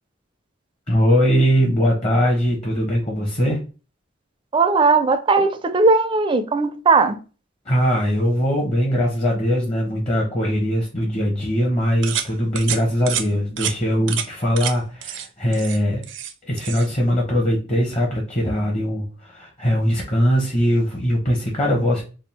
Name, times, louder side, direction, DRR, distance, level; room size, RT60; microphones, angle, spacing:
voice 1, 0.9-3.6 7.7-16.0 16.4-22.0, equal, 35° left, 0.9 m, -21 dB
voice 2, 4.5-7.2, right 4 dB, 25° right, 0.4 m, -17 dB
sound 1, 12.0-12.3 12.6-12.8 13.1-13.3 13.6-13.7 14.1-14.3 14.6-14.7 15.0-15.3 15.5-16.3 16.6-16.9, right 9 dB, 85° right, 0.5 m, -27 dB
3.5 x 2.4 x 4.1 m
head